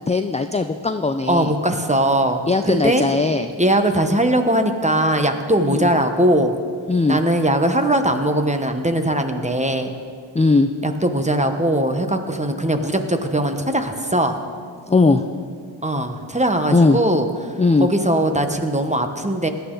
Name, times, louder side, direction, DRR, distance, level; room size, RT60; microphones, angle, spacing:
voice 1, 0.0-1.5 2.5-3.5 5.6-5.9 6.9-7.2 10.3-10.7 14.9-15.2 16.7-17.0 17.6-17.9, left 3 dB, 15° left, 8 dB, 0.4 m, -18 dB
voice 2, 1.3-3.0 3.6-6.5 7.1-9.9 10.8-14.4 15.8-17.3 17.8-19.5, right 1 dB, 15° right, 6 dB, 1.1 m, -20 dB
17.5 x 11.0 x 3.9 m, 2.1 s
wide cardioid pair, 50°, 48 cm